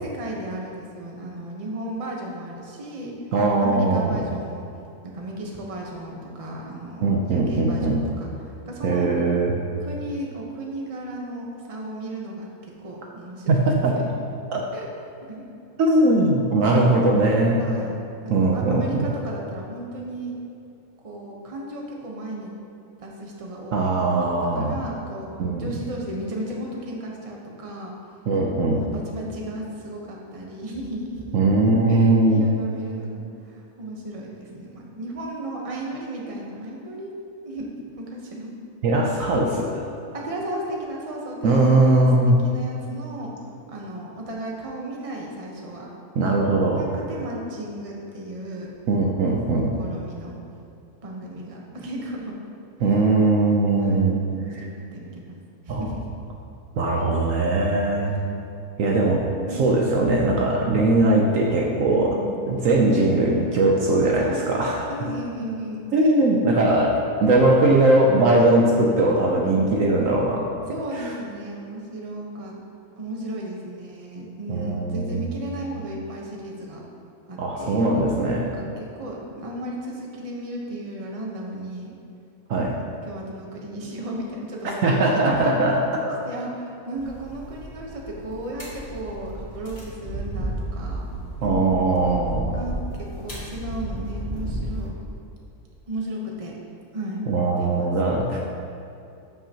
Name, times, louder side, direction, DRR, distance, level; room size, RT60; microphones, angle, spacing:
voice 1, 0.0-3.1 3.6-4.7 5.0-9.1 9.8-14.1 14.7-14.9 15.3-15.4 16.7-17.1 17.6-20.4 21.0-22.5 23.0-23.9 24.5-25.3 25.6-27.9 28.7-31.3 31.9-37.1 37.4-38.5 40.1-43.3 43.7-45.9 46.7-48.7 49.8-50.3 51.0-52.3 52.8-53.1 53.8-55.4 55.6-56.1 57.0-57.1 58.0-58.4 59.5-59.7 61.9-62.4 64.1-64.5 64.9-65.9 69.4-69.7 70.7-72.6 73.0-76.8 77.3-77.9 78.5-81.9 82.7-82.8 83.1-85.5 86.2-91.1 91.4-91.7 92.5-94.9 95.9-96.5 96.9-97.3 97.6-98.5, right 1 dB, 25° right, -2 dB, 1.0 m, -34 dB
voice 2, 3.3-4.2 7.0-8.0 8.8-9.5 13.5-13.9 14.5-14.6 15.8-17.6 18.3-19.1 23.7-24.8 25.4-25.7 28.3-28.9 31.3-32.4 38.8-39.8 41.4-42.4 46.2-46.9 48.9-49.8 52.8-54.2 55.7-55.8 56.8-58.1 58.8-59.2 59.6-62.2 62.4-64.9 65.9-70.5 70.9-71.1 74.5-75.3 77.4-78.5 82.5-82.8 84.8-85.8 86.1-86.2 91.4-92.5 97.3-98.4, right 2 dB, 65° right, -1 dB, 1.0 m, -20 dB
sound 1, 87.0-94.9, right 1 dB, 30° left, 2.2 m, -33 dB
13.0 x 5.6 x 2.9 m, 2.6 s
omnidirectional pair, 1.6 m